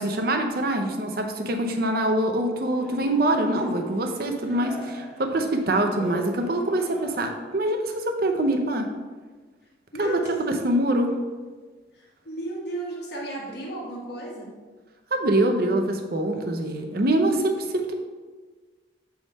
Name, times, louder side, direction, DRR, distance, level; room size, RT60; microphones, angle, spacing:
voice 1, 0.0-8.9 10.0-11.1 15.1-17.9, right 1 dB, 50° right, 4 dB, 0.7 m, -24 dB
Cheering, 2.5-7.5, equal, ahead, 1.2 m, -41 dB
voice 2, 9.9-10.3 11.9-14.5, right 1 dB, 55° left, -4 dB, 1.3 m, -34 dB
7.7 x 3.6 x 4.1 m, 1.4 s
head